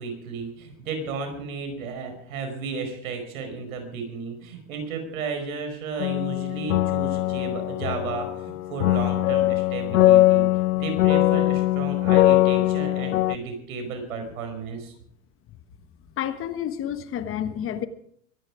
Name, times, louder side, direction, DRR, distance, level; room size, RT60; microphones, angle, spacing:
voice 1, 0.0-10.4 10.7-14.9, right 4 dB, 75° right, 5 dB, 5.1 m, -33 dB
sound 1, 6.0-13.4, left 15 dB, 85° left, 0.7 m, -21 dB
voice 2, 16.2-17.9, left 10 dB, 30° left, 11 dB, 1.3 m, -29 dB
23.0 x 10.5 x 4.9 m, 0.66 s
hypercardioid pair, 120°, 42 cm